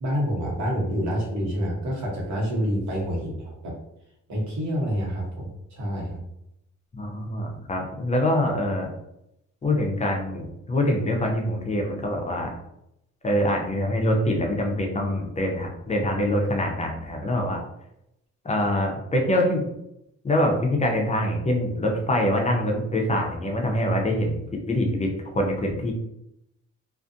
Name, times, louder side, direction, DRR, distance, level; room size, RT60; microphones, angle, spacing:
voice 1, 0.0-3.7 4.3-6.2, equal, 70° right, -3 dB, 1.2 m, -27 dB
voice 2, 6.9-8.9 9.6-12.5 13.2-17.6 18.4-19.7 20.2-25.9, left 1 dB, 25° left, 1 dB, 0.5 m, -24 dB
2.5 x 2.4 x 2.6 m, 0.81 s
cardioid pair, 90°, 30 cm